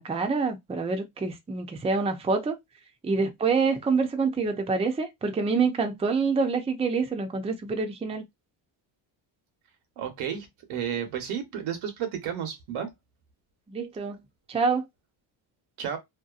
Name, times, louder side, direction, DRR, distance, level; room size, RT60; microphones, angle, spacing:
voice 1, 0.0-2.6 3.0-8.2 13.7-14.2 14.5-14.8, right 4 dB, 15° right, 0.5 m, -26 dB
voice 2, 10.0-12.9 15.8-16.0, right 8 dB, 80° right, 1.1 m, -32 dB
2.8 x 2.2 x 2.4 m
cardioid pair, 90°, 49 cm